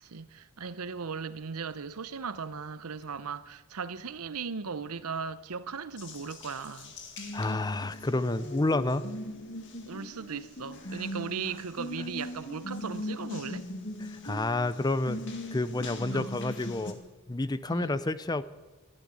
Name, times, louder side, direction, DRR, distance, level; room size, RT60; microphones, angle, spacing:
voice 1, 0.0-6.9 9.9-13.7 16.1-16.3 17.7-18.0, right 5 dB, 80° right, 0.7 m, -37 dB
Water tap faucet, 6.0-16.9, left 1 dB, 55° left, 2.0 m, -40 dB
voice 2, 7.3-9.1 10.9-11.0 14.0-15.2 15.5-17.0 17.3-18.4, left 2 dB, 20° left, 0.5 m, -29 dB
12.0 x 12.0 x 9.8 m
head